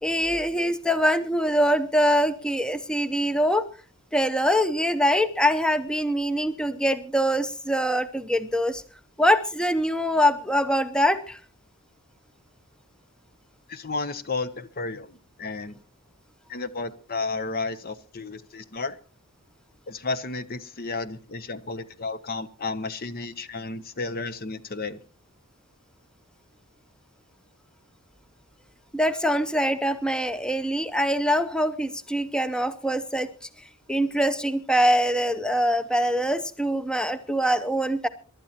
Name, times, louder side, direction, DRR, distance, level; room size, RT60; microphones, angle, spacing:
voice 1, 0.0-3.7 4.1-8.8 9.2-11.4 28.9-33.3 33.9-38.1, equal, 5° left, 11 dB, 0.6 m, -23 dB
voice 2, 13.7-15.8 16.5-19.0 19.9-25.0, left 3 dB, 45° left, 14 dB, 0.7 m, -32 dB
27.5 x 12.0 x 2.8 m, 0.38 s
head